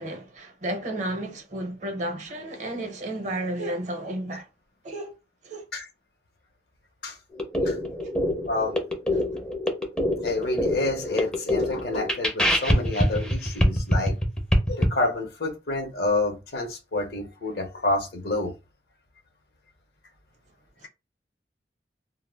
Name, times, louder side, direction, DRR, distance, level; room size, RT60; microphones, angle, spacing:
voice 1, 0.0-4.5 4.8-5.1 5.4-5.7 20.8-20.9, right 1 dB, 45° right, 0.6 m, -32 dB
sound 1, 7.4-14.9, equal, 5° left, 0.4 m, -24 dB
voice 2, 8.5-8.8 10.2-14.2 14.7-18.5, left 2 dB, 60° left, 0.6 m, -28 dB
2.1 x 2.0 x 3.2 m
head